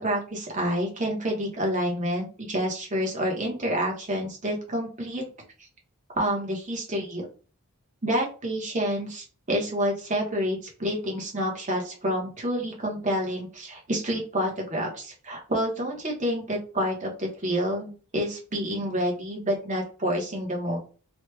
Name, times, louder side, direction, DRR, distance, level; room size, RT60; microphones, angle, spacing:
voice 1, 0.0-5.3 6.1-7.3 8.0-20.8, equal, 35° right, -1 dB, 1.1 m, -28 dB
3.1 x 2.4 x 3.3 m, 0.36 s
head